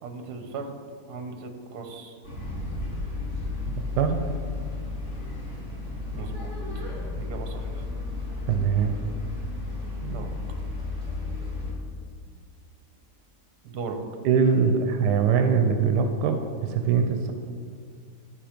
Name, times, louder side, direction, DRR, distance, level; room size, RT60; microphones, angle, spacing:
voice 1, 0.0-0.7 1.1-2.2 6.1-6.6 7.2-7.8 10.1-10.3 13.6-14.0, right 4 dB, 75° right, 6 dB, 1.4 m, -37 dB
sound 1, 2.2-11.7, left 3 dB, 45° left, 2.8 m, -33 dB
voice 2, 8.5-8.9 10.0-10.2 14.2-17.3, right 6 dB, 90° right, 6 dB, 1.2 m, -22 dB
10.5 x 4.7 x 5.1 m, 2.2 s
omnidirectional pair, 1.8 m